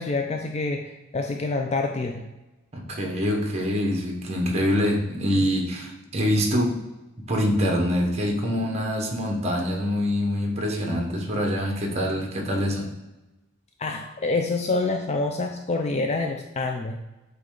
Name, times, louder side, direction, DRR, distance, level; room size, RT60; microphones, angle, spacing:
voice 1, 0.0-2.2 13.8-17.0, left 3 dB, 30° left, 3 dB, 0.4 m, -27 dB
voice 2, 2.7-6.8 7.2-12.9, equal, 30° right, 1 dB, 1.2 m, -25 dB
8.0 x 3.1 x 3.9 m, 1.0 s
head